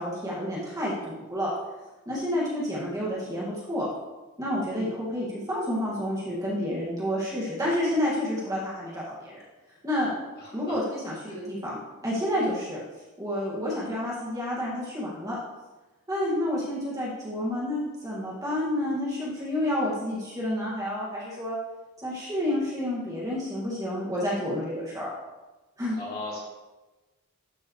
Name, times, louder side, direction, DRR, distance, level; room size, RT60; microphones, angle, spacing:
voice 1, 0.0-1.5 2.1-3.9 4.4-9.4 9.8-10.1 10.5-12.8 13.2-15.4 16.1-21.6 22.0-25.1 25.8-26.0, left 1 dB, 15° right, -7 dB, 2.1 m, -29 dB
voice 2, 26.0-26.4, left 2 dB, 45° left, -6 dB, 2.9 m, -37 dB
12.0 x 5.4 x 3.2 m, 1.1 s
head